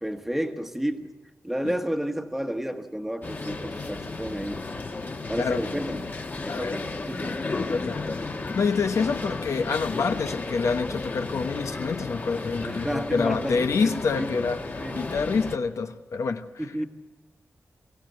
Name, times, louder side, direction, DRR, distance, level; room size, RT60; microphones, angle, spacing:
voice 1, 0.0-1.1 1.4-4.7 5.3-6.0 6.4-7.4 12.6-15.0 16.6-16.9, equal, 5° right, 6 dB, 1.2 m, -31 dB
sound 1, 3.2-15.6, left 3 dB, 35° left, 1.3 m, -33 dB
voice 2, 6.5-6.8 7.5-16.7, left 5 dB, 85° left, 7 dB, 1.0 m, -27 dB
23.5 x 16.0 x 8.0 m, 1.2 s
wide cardioid pair, 175°, 5 cm